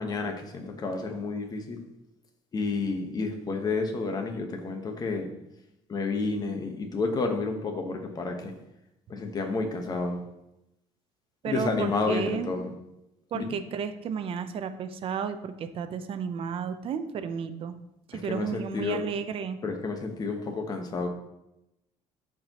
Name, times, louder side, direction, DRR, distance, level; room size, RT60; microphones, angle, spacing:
voice 1, 0.0-1.8 2.5-5.3 5.9-8.5 9.1-10.2 11.4-12.7 13.3-13.6 18.1-19.0 19.6-21.1, left 3 dB, 30° left, 4 dB, 1.3 m, -30 dB
voice 2, 11.4-12.5 13.3-17.7 18.1-19.6, right 7 dB, 50° right, 10 dB, 0.7 m, -33 dB
13.5 x 4.7 x 3.0 m, 0.87 s
cardioid pair, 130°, 12 cm